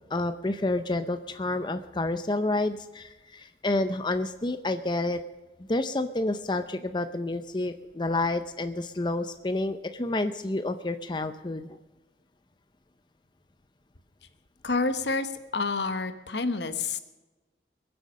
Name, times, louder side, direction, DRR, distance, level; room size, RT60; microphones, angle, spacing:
voice 1, 0.1-5.2 5.7-11.8, left 2 dB, 25° left, 9 dB, 0.6 m, -29 dB
voice 2, 14.6-17.0, left 3 dB, 70° left, 10 dB, 1.2 m, -28 dB
22.0 x 7.8 x 6.3 m, 1.1 s
head